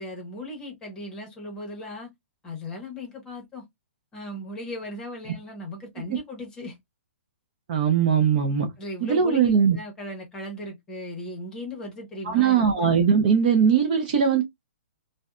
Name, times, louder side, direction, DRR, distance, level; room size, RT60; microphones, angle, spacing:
voice 1, 0.0-2.1 2.4-3.6 4.1-6.8 8.8-13.0, left 1 dB, 10° left, 0.9 m, -37 dB
voice 2, 7.7-8.7 9.0-9.8 12.3-14.4, right 7 dB, 35° right, 0.5 m, -20 dB
2.6 x 2.1 x 2.3 m
hypercardioid pair, 165°, 7 cm